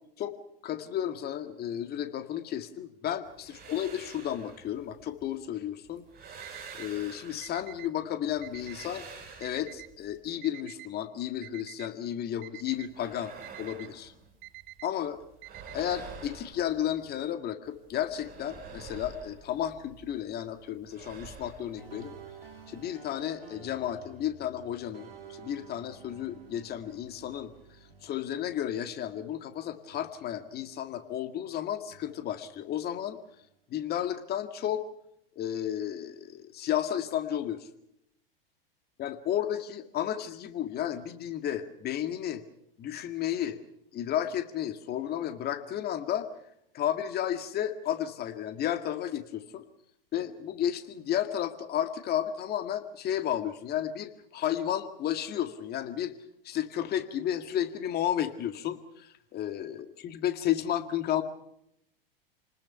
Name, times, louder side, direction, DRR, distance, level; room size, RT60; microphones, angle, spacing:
voice 1, 0.6-6.1 6.7-9.0 9.4-14.1 14.8-15.2 15.7-22.1 22.7-27.5 28.0-33.2 33.7-34.9 35.4-37.7 39.0-42.4 42.8-43.6 43.9-46.3 46.7-49.6 50.1-56.1 56.4-61.2, left 10 dB, 35° left, 9 dB, 2.0 m, -32 dB
sound 1, 3.2-5.4 5.8-7.9 8.3-10.2 12.6-14.8 15.0-17.3 17.6-20.2 20.4-22.8, right 5 dB, 30° right, 7.9 m, -48 dB
Alarm, 6.4-6.9 7.4-7.9 8.4-8.9 9.4-9.9 10.4-10.9 11.4-11.9 12.4-12.9 13.4-13.9 14.4-14.9 15.4-16.0, right 19 dB, 50° right, 1.5 m, -47 dB
sound 2, 21.8-29.7 29.9-31.5 31.9-33.5, right 5 dB, 85° right, 3.5 m, -52 dB
29.5 x 20.0 x 5.7 m, 0.78 s
figure-of-eight pair, 95°, 29 cm